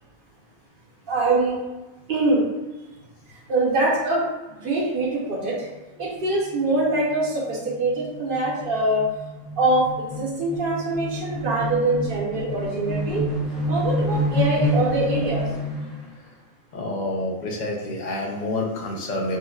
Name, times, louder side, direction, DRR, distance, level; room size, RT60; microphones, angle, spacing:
voice 1, 1.1-1.6 2.1-2.4 3.3-5.7 6.0-9.0 9.6-13.2 13.7-15.4, right 2 dB, 50° right, -4 dB, 1.0 m, -24 dB
sound 1, 5.4-5.7 6.0-6.2 6.4-16.1, left 1 dB, ahead, 0.4 m, -28 dB
voice 2, 16.7-19.4, left 2 dB, 45° left, -1 dB, 0.6 m, -28 dB
4.4 x 2.3 x 2.3 m, 1.1 s
omnidirectional pair, 1.3 m